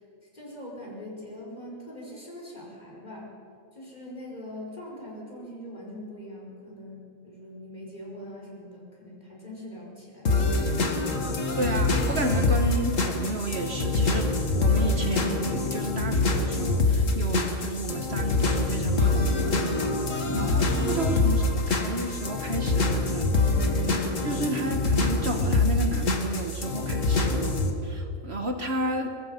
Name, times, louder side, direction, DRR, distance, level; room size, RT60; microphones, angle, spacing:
voice 1, 0.3-3.3 3.7-10.4 20.2-20.5, left 1 dB, 30° left, -3 dB, 5.7 m, -42 dB
sound 1, 10.2-27.7, left 3 dB, 70° left, 2.1 m, -25 dB
voice 2, 11.5-23.7 24.2-27.6 27.8-29.1, right 2 dB, 50° right, 5 dB, 1.6 m, -32 dB
24.5 x 20.0 x 5.8 m, 2.6 s
omnidirectional pair, 1.4 m